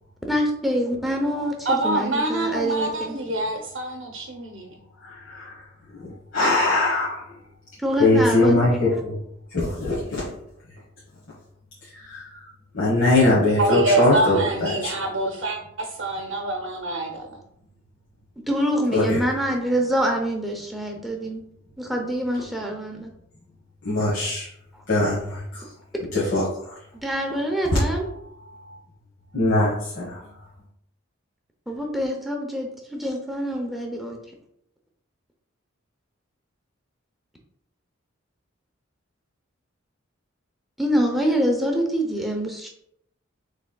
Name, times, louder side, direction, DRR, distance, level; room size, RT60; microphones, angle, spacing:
voice 1, 0.3-3.2 7.8-8.8 18.5-21.4 21.8-23.1 26.9-28.1 31.7-34.2 40.8-42.7, equal, ahead, 1 dB, 0.7 m, -25 dB
voice 2, 1.7-4.7 13.6-17.4, right 2 dB, 70° right, 1 dB, 0.7 m, -25 dB
voice 3, 5.0-5.6 6.3-7.2 8.0-9.2 9.5-10.2 11.9-12.4 12.7-14.9 18.9-19.2 23.8-24.5 24.9-25.6 26.1-26.7 27.7-27.8 29.3-30.2, left 2 dB, 60° left, -7 dB, 1.4 m, -21 dB
6.4 x 3.4 x 2.3 m, 0.74 s
head